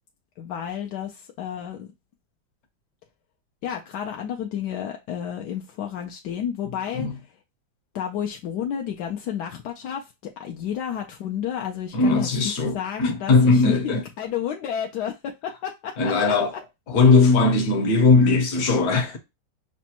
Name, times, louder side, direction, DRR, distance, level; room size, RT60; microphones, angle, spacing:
voice 1, 0.4-1.9 3.6-7.1 7.9-12.3 12.7-16.3, left 9 dB, 70° left, 1.0 m, -31 dB
voice 2, 11.9-14.0 16.0-16.5 16.9-19.2, left 3 dB, 55° left, 1.3 m, -19 dB
6.0 x 2.2 x 2.8 m
omnidirectional pair, 2.1 m